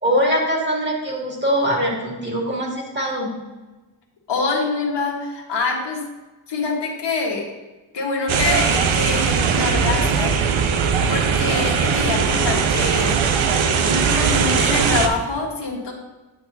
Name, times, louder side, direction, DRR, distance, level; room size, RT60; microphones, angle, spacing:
voice 1, 0.0-3.3, equal, 20° right, -2 dB, 2.4 m, -22 dB
voice 2, 4.3-6.0 6.5-7.5 7.9-10.3 11.1-13.2 13.8-15.9, left 4 dB, 60° left, -1 dB, 1.6 m, -25 dB
sound 1, 8.3-15.1, right 6 dB, 75° right, 0.8 m, -19 dB
9.8 x 6.0 x 2.7 m, 1.2 s
cardioid pair, 80°, 47 cm